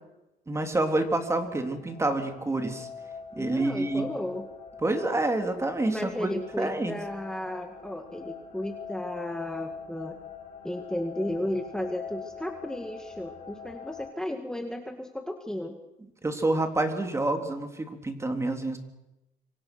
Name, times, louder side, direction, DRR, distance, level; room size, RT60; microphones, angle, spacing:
voice 1, 0.5-2.9 3.3-4.1 4.8-7.0 16.2-18.8, right 2 dB, 15° right, 6 dB, 3.4 m, -28 dB
sound 1, 0.6-14.1, left 6 dB, 45° left, 5.2 m, -44 dB
voice 2, 3.3-4.4 5.9-10.2 10.6-15.8, left 1 dB, 5° left, 4 dB, 2.2 m, -34 dB
26.0 x 25.0 x 6.3 m, 0.97 s
cardioid pair, 110°, 17 cm